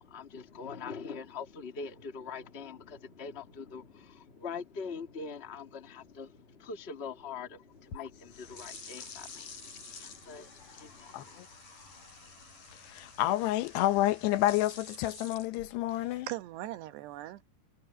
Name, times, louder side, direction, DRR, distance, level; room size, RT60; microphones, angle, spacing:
voice 1, 0.0-11.4, left 5 dB, 30° left, 1.2 m, -43 dB
sound 1, 7.7-16.2, left 4 dB, 50° left, 8.1 m, -49 dB
voice 2, 11.1-11.5 12.7-16.3, left 15 dB, 90° left, 3.2 m, -29 dB
voice 3, 15.9-17.4, right 15 dB, 85° right, 3.2 m, -40 dB
omnidirectional pair, 4.7 m